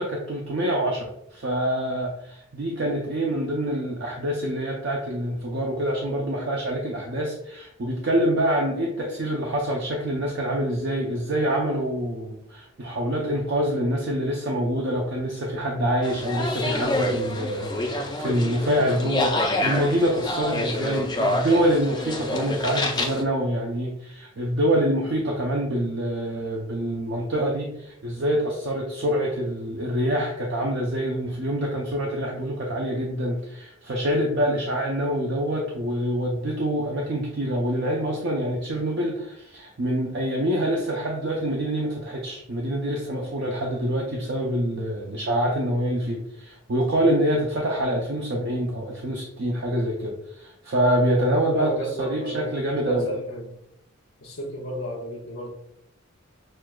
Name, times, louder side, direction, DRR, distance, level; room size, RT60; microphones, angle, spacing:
voice 1, 0.0-53.1, equal, 55° right, -1 dB, 0.5 m, -26 dB
sound 1, 16.0-23.2, left 1 dB, 20° left, 0.4 m, -27 dB
voice 2, 51.5-53.5 54.2-55.5, right 1 dB, 85° left, -5 dB, 0.7 m, -33 dB
6.2 x 2.3 x 2.2 m, 0.80 s
head